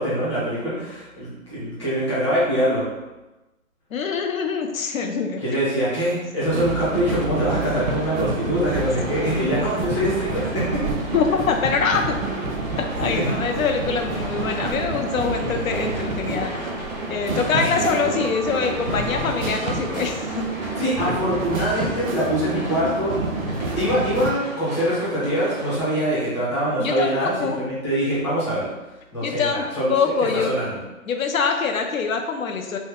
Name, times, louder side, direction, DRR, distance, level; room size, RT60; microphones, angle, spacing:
voice 1, 0.0-2.8 5.4-10.8 13.1-13.3 17.7-18.2 20.8-23.3 23.6-28.7 29.1-29.9 30.3-30.8, equal, 20° left, -10 dB, 0.9 m, -24 dB
voice 2, 3.9-5.4 9.3-9.6 11.1-12.2 12.8-16.5 17.1-20.5 21.1-21.2 26.8-27.6 29.2-30.5 31.1-32.8, left 5 dB, 75° left, 4 dB, 0.6 m, -24 dB
sound 1, 6.4-24.3, right 3 dB, 80° right, 0.7 m, -29 dB
sound 2, 6.6-25.8, right 1 dB, 35° right, 0.4 m, -36 dB
2.7 x 2.1 x 3.7 m, 1.0 s
hypercardioid pair, 175°, 41 cm